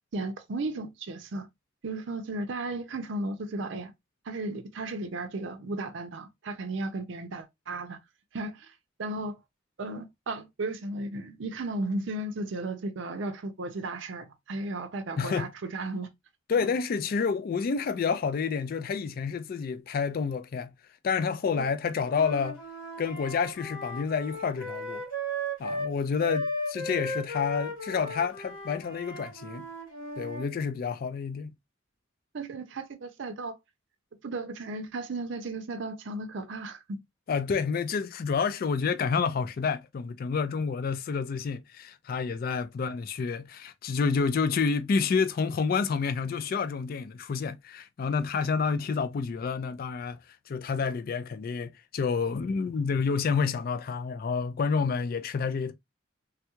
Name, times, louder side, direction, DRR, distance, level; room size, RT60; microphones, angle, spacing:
voice 1, 0.1-1.5 1.8-3.9 4.2-8.0 8.3-8.7 9.0-9.4 9.8-16.1 16.5-16.7 21.6-21.7 32.3-33.6 34.2-37.0, right 2 dB, 65° right, 0.5 m, -35 dB
voice 2, 15.2-15.5 16.5-20.7 21.0-22.6 23.0-25.0 25.6-29.7 30.2-31.5 37.3-55.7, left 5 dB, 45° left, 0.3 m, -29 dB
Wind instrument woodwind instrument, 22.0-25.9 26.2-30.5, equal, 85° left, 2.3 m, -36 dB
3.4 x 2.3 x 2.8 m
head